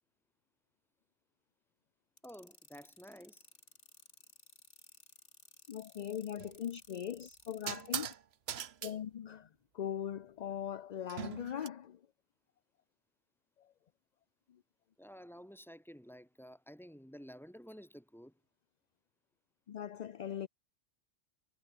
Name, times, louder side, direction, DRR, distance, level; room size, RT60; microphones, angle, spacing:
sound 1, 2.2-8.1, left 2 dB, 80° left, 5.3 m, -59 dB
voice 1, 2.2-3.5 15.0-18.3, equal, ahead, 4.1 m, -52 dB
voice 2, 5.7-8.1 8.8-9.5 9.7-12.0 19.7-20.5, left 9 dB, 50° left, 0.5 m, -40 dB
sound 2, 6.4-6.6 7.7-8.2 8.5-8.9 11.1-11.7, right 8 dB, 65° right, 1.1 m, -40 dB
omnidirectional pair, 1.2 m